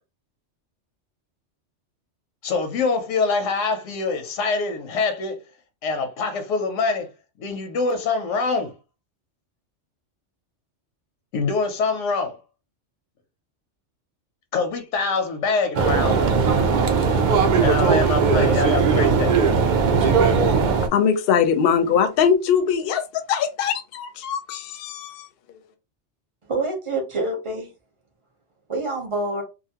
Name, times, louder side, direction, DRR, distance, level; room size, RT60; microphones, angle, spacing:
voice 1, 2.4-5.4 5.8-7.1 7.4-8.7 11.3-12.4 14.5-16.3 17.6-19.3, left 4 dB, 90° left, 1.0 m, -24 dB
sound 1, 15.7-20.9, right 5 dB, 60° right, 0.5 m, -18 dB
voice 2, 20.9-25.3, left 7 dB, 60° left, 0.7 m, -21 dB
voice 3, 26.5-27.7 28.7-29.4, right 2 dB, 30° right, 0.7 m, -26 dB
2.5 x 2.4 x 2.8 m
omnidirectional pair, 1.2 m